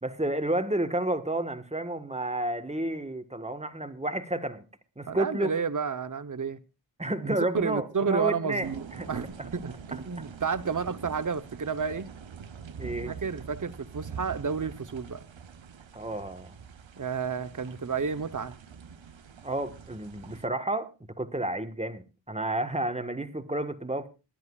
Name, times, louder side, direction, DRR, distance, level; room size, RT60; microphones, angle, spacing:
voice 1, 0.0-4.6 5.0-5.5 7.0-8.7 9.0-9.1 9.9-10.2 12.8-13.1 15.9-16.6 19.4-20.9 21.2-24.1, right 1 dB, 15° right, 1.4 m, -31 dB
voice 2, 5.1-6.6 7.2-12.1 13.1-15.2 17.0-18.6, right 6 dB, 45° right, 0.9 m, -31 dB
sound 1, 8.6-20.5, right 6 dB, 90° right, 0.9 m, -45 dB
26.5 x 10.5 x 2.4 m
wide cardioid pair, 65°, 44 cm